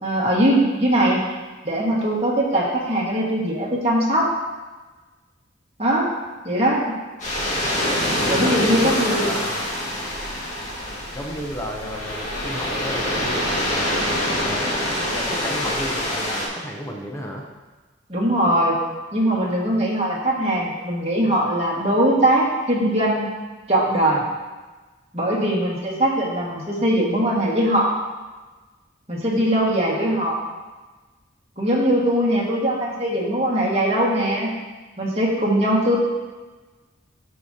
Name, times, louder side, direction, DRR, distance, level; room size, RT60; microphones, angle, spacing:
voice 1, 0.0-1.2 1.6-4.3 5.8-6.1 6.4-6.8 8.3-9.3 18.1-18.8 19.1-23.3 23.7-24.2 25.1-27.9 29.1-30.4 31.6-34.5 35.0-36.0, right 1 dB, 30° right, -4 dB, 1.6 m, -21 dB
sound 1, 7.2-16.5, left 1 dB, 40° left, 1.8 m, -25 dB
voice 2, 8.4-9.0 9.2-9.6 11.1-14.1 14.4-14.8 15.1-17.4, equal, 15° left, 0 dB, 0.6 m, -32 dB
12.0 x 5.0 x 2.7 m, 1.3 s
head